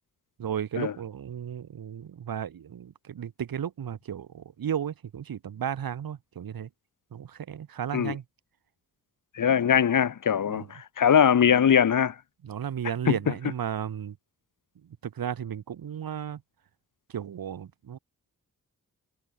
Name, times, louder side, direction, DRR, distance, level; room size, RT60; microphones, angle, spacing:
voice 1, 0.4-6.7 7.1-8.2 10.5-10.7 12.4-14.2 15.0-16.4 17.1-18.0, right 9 dB, 85° right, 4.6 m, -34 dB
voice 2, 9.3-12.1 13.1-13.2, left 8 dB, 65° left, 2.4 m, -21 dB
wide cardioid pair, 150°, 34 cm